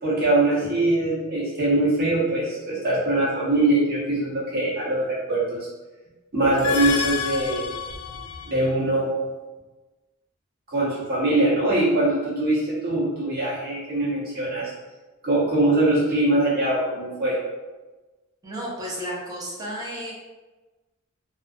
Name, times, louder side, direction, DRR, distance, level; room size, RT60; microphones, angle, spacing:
voice 1, 0.0-5.7 6.3-7.6 8.5-9.1 10.7-14.7 15.2-17.4, right 2 dB, 45° right, -7 dB, 0.9 m, -22 dB
sound 1, 6.4-8.7, left 7 dB, 70° left, 0.3 m, -29 dB
voice 2, 18.4-20.1, equal, 15° right, -5 dB, 0.5 m, -32 dB
2.3 x 2.2 x 2.5 m, 1.2 s
head